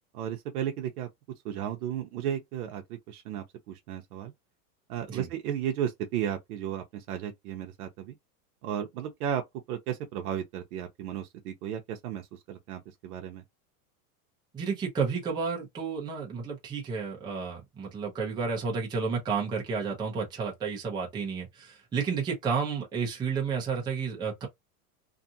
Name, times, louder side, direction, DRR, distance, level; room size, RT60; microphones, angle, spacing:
voice 1, 0.1-1.1 1.4-4.3 4.9-8.1 8.6-9.4 9.7-13.4, right 10 dB, 75° right, 0.7 m, -34 dB
voice 2, 14.5-24.5, right 5 dB, 10° right, 0.5 m, -31 dB
2.6 x 2.5 x 2.6 m
supercardioid pair, 150°, 46 cm